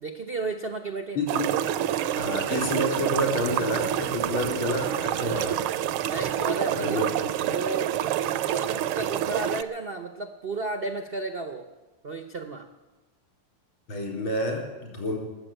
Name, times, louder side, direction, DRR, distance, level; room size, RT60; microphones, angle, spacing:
voice 1, 0.0-1.2 6.0-7.1 7.4-8.0 8.5-11.7 12.0-12.7, right 3 dB, 65° right, 7 dB, 0.5 m, -33 dB
voice 2, 1.1-1.5 2.2-5.6 6.7-7.1 13.9-15.2, left 1 dB, 70° left, 0 dB, 5.0 m, -29 dB
sound 1, 1.3-9.6, right 11 dB, 80° right, 1.5 m, -27 dB
21.0 x 7.2 x 9.1 m, 1.2 s
omnidirectional pair, 2.4 m